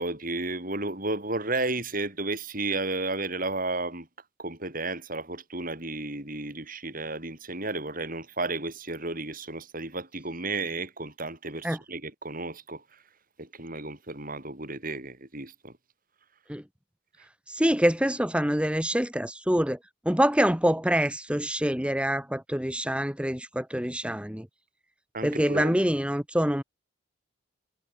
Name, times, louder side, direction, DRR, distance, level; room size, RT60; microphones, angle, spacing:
voice 1, 0.0-4.1 4.4-12.8 13.4-15.7 25.1-25.7, right 2 dB, 40° right, 5.6 m, -33 dB
voice 2, 17.5-19.8 20.1-24.5 25.2-26.6, equal, 5° right, 2.0 m, -25 dB
head